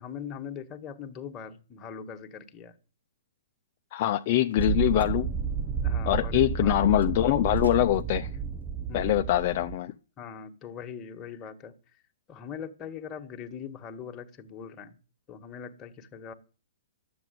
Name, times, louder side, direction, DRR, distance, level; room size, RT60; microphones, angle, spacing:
voice 1, 0.0-2.7 5.8-6.8 8.9-9.3 10.2-12.0 12.3-15.0 15.3-16.3, left 7 dB, 25° left, 1.7 m, -41 dB
voice 2, 3.9-5.3 6.1-8.4 8.9-9.9, left 13 dB, 45° left, 0.7 m, -24 dB
Slam, 4.0-10.0, right 2 dB, 90° right, 4.3 m, -51 dB
sound 1, 4.6-9.8, right 7 dB, 15° right, 0.8 m, -31 dB
12.0 x 7.9 x 9.3 m
figure-of-eight pair, 120°, 0 cm